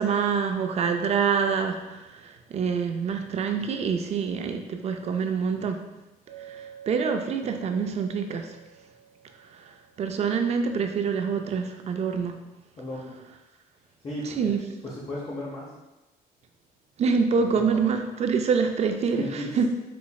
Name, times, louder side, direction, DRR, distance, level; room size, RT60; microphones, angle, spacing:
voice 1, 0.0-5.8 6.4-8.6 9.5-9.7 10.0-12.4 14.3-14.6 17.0-19.7, right 6 dB, 40° right, 6 dB, 0.4 m, -26 dB
Chink clink, 6.3-10.3, right 8 dB, 70° right, 1.0 m, -49 dB
voice 2, 12.8-13.2 14.0-14.5 14.8-15.7 17.4-17.8 19.2-19.5, left 1 dB, 30° left, -5 dB, 0.7 m, -35 dB
4.2 x 3.0 x 2.3 m, 1.1 s
cardioid pair, 110°, 17 cm